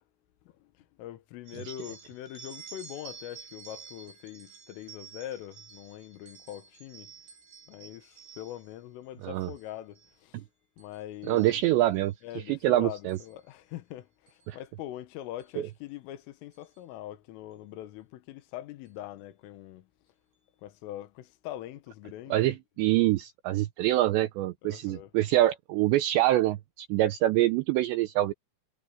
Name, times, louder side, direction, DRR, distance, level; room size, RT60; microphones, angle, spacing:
voice 1, 1.0-7.1 7.7-10.4 10.8-11.6 12.2-19.9 20.6-22.6 24.6-25.1, left 13 dB, 75° left, 4.0 m, -43 dB
sound 1, 1.5-8.8 9.3-9.6 10.0-10.4 10.8-12.1 13.1-13.3 14.3-14.4 15.4-15.5 15.9-16.0 16.5-16.8, right 6 dB, 60° right, 6.8 m, -50 dB
voice 2, 11.3-12.1 12.5-13.2 14.5-14.6 22.3-28.3, right 15 dB, 90° right, 2.5 m, -25 dB
omnidirectional pair, 6.0 m